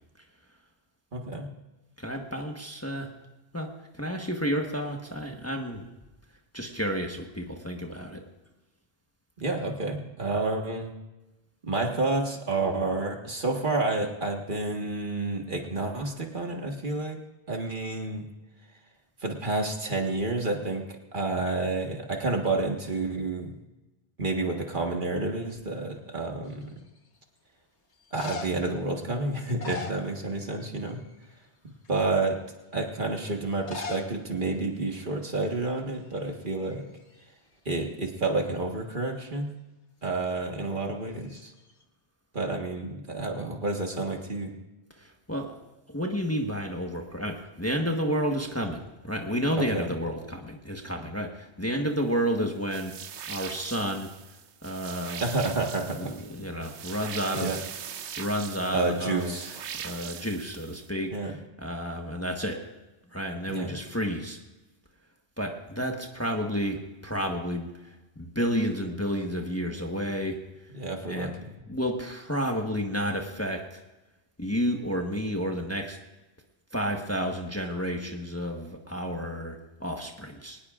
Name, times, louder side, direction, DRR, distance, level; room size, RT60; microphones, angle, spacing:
voice 1, 1.1-1.5 9.4-10.9 11.6-17.2 17.5-18.3 19.2-23.5 24.2-26.7 28.1-31.0 31.9-32.4 32.7-36.8 37.6-39.5 40.0-41.5 42.3-44.6 49.6-49.9 55.2-56.1 57.3-57.6 58.7-59.6 61.1-61.4 63.5-63.7 70.7-71.6, right 2 dB, 50° right, 2 dB, 1.7 m, -29 dB
voice 2, 2.0-3.1 3.5-5.8 6.5-8.2 44.9-45.5 45.9-52.9 53.3-54.1 54.6-55.2 56.0-57.6 58.2-59.3 59.8-62.6 63.1-64.4 65.4-70.7 71.1-71.3 71.7-73.8 74.4-76.0 76.7-80.6, equal, 15° left, 2 dB, 1.2 m, -31 dB
sound 1, 26.5-27.0 27.9-28.7 29.4-30.6 30.9-31.3 31.8-31.9 33.5-34.1 34.4-34.5 34.7-34.8 35.5-35.7 36.0-37.2 41.2-41.8, left 4 dB, 85° left, 1.5 m, -40 dB
sound 2, 52.7-60.9, right 8 dB, 90° right, 1.1 m, -41 dB
22.5 x 19.0 x 2.5 m, 1.1 s
omnidirectional pair, 1.1 m